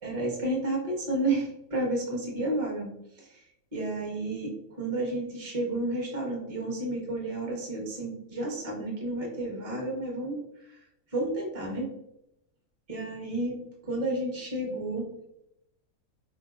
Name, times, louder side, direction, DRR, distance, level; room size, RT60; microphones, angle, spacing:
voice 1, 0.0-2.9 3.2-3.4 3.7-10.8 11.1-11.9 12.9-13.6 13.8-15.1, right 2 dB, 25° right, -2 dB, 0.9 m, -31 dB
4.4 x 2.7 x 2.4 m, 0.81 s
omnidirectional pair, 1.6 m